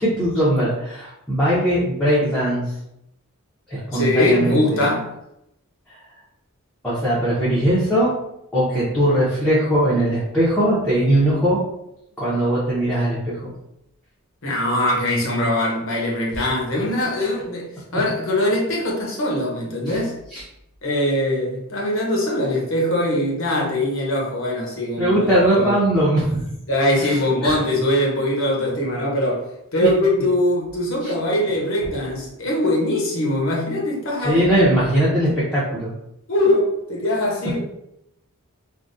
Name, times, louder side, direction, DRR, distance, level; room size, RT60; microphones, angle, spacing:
voice 1, 0.0-2.6 3.7-4.8 6.8-8.1 8.5-11.6 12.2-13.5 19.9-20.0 20.3-20.4 25.0-26.4 26.9-27.6 29.8-29.9 31.0-31.1 34.2-35.9, right 1 dB, 5° left, 0.7 m, -20 dB
voice 2, 3.9-5.1 14.4-20.1 20.8-25.7 26.7-29.5 29.7-34.4 36.3-37.6, left 1 dB, 60° left, 0.9 m, -22 dB
3.6 x 2.2 x 2.6 m
head